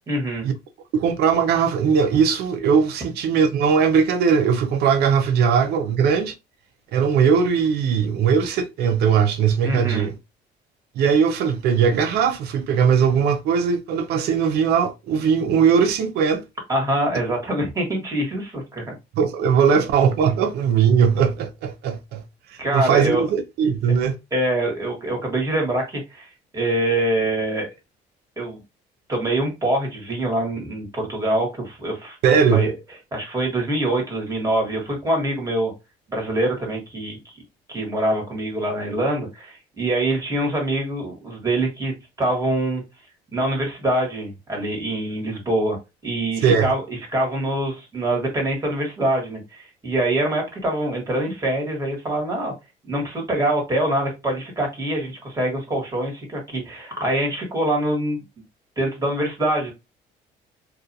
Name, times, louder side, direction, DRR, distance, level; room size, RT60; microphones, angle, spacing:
voice 1, 0.1-0.5 9.6-10.1 16.7-19.0 22.6-23.2 23.9-24.0 24.3-27.7 28.4-28.6 29.1-32.2 32.5-32.7 33.1-35.7 36.1-37.3 37.7-42.8 43.3-45.8 46.0-52.5 52.8-58.2 58.8-59.7, right 1 dB, 20° right, 1.4 m, -24 dB
voice 2, 0.9-6.3 6.9-10.1 11.0-16.4 19.2-22.2 22.7-24.1 32.2-32.7 46.4-46.7, right 6 dB, 75° right, 0.5 m, -19 dB
2.4 x 2.4 x 2.6 m
cardioid pair, 110°, 17 cm